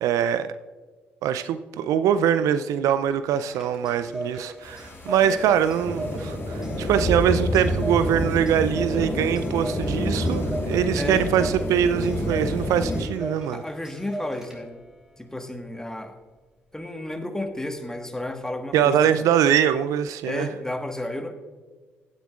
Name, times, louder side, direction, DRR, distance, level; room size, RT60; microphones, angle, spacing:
voice 1, 0.0-0.5 1.2-13.6 18.7-20.5, right 9 dB, 65° right, 0.4 m, -23 dB
Clock, 3.3-14.9, right 1 dB, 10° right, 3.3 m, -38 dB
sound 1, 4.6-13.0, left 1 dB, 40° left, 3.2 m, -28 dB
voice 2, 5.2-5.6 10.9-11.5 13.5-14.7 15.2-16.2 16.7-19.0 20.2-21.3, left 1 dB, 10° left, 1.5 m, -32 dB
16.0 x 9.4 x 2.4 m
hypercardioid pair, 45°, 6 cm